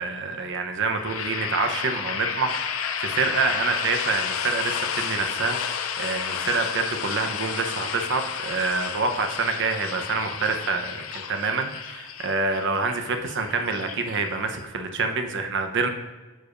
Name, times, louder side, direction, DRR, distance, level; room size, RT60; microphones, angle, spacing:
voice 1, 0.0-15.9, right 4 dB, 60° right, 6 dB, 0.9 m, -27 dB
sound 1, 0.8-14.6, left 7 dB, 70° left, 0.6 m, -32 dB
11.5 x 7.1 x 2.6 m, 1.3 s
head